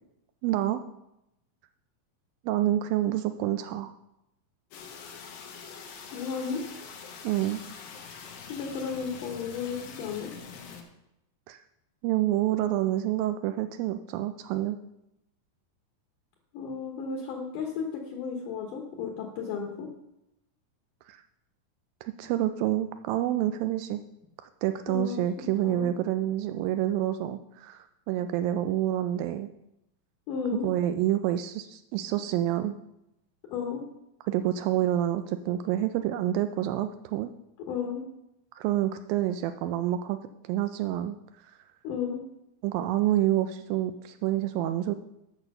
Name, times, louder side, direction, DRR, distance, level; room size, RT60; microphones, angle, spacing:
voice 1, 0.4-0.8 2.5-3.9 7.2-7.6 11.5-11.6 12.0-14.8 21.1-21.2 22.0-24.0 24.6-29.5 30.6-32.8 34.3-37.3 38.6-40.2 40.4-41.2 42.6-45.0, right 12 dB, 85° right, 9 dB, 2.3 m, -28 dB
sound 1, 4.7-10.8, left 6 dB, 85° left, 2.9 m, -44 dB
voice 2, 6.1-6.6 8.5-10.3 16.5-19.9 24.9-25.9 30.3-30.7 33.5-33.8 37.7-38.0 41.8-42.2, left 6 dB, 70° left, 1 dB, 2.5 m, -33 dB
8.8 x 6.2 x 6.6 m, 0.85 s
omnidirectional pair, 4.1 m